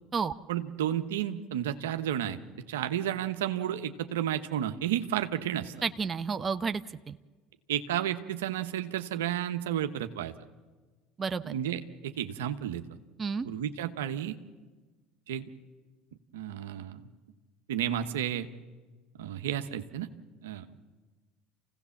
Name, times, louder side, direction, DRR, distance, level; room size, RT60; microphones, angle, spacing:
voice 1, 0.5-5.7 7.7-10.3 11.4-12.8 13.4-14.4 15.3-15.5 16.3-17.0 17.7-18.5 19.2-20.1 20.4-20.6, right 10 dB, 85° right, 8 dB, 1.0 m, -32 dB
voice 2, 5.8-7.2 11.2-11.5 13.2-13.5, right 5 dB, 30° right, 10 dB, 0.8 m, -31 dB
28.0 x 16.5 x 7.3 m, 1.3 s
hypercardioid pair, 80°, 0 cm